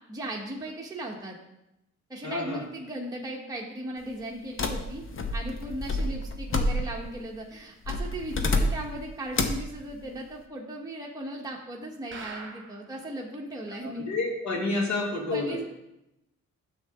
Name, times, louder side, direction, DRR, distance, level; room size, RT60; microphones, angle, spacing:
voice 1, 0.1-1.4 2.1-5.0 5.3-14.1 15.3-15.6, right 1 dB, 10° right, -2 dB, 1.3 m, -37 dB
voice 2, 2.2-2.6 13.8-15.6, left 2 dB, 70° left, 1 dB, 2.0 m, -29 dB
sound 1, 4.6-7.2 7.9-9.0 9.3-9.7, left 2 dB, 45° left, 1.0 m, -28 dB
sound 2, 12.1-13.0 13.3-13.4 13.7-13.8 14.2-14.3, right 4 dB, 40° right, 1.3 m, -42 dB
9.7 x 7.0 x 3.7 m, 0.88 s
cardioid pair, 85°, 30 cm